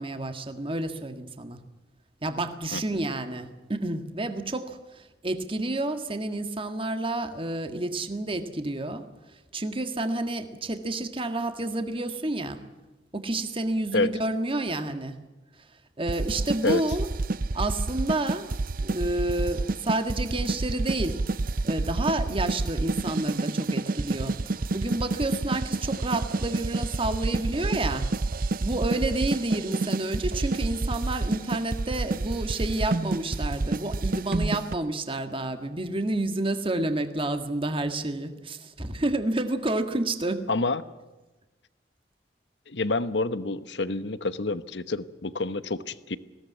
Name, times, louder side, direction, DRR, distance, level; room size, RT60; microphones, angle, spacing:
voice 1, 0.0-1.6 2.2-9.0 9.5-12.6 13.1-15.2 16.0-17.1 17.5-18.5 18.8-21.2 21.6-28.1 28.6-40.5, right 2 dB, 30° right, 8 dB, 1.8 m, -29 dB
sound 1, 16.1-34.7, right 2 dB, 55° right, 0.6 m, -29 dB
voice 2, 40.5-40.8 42.7-46.2, left 3 dB, 90° left, 14 dB, 1.1 m, -28 dB
20.5 x 17.0 x 9.5 m, 1.1 s
head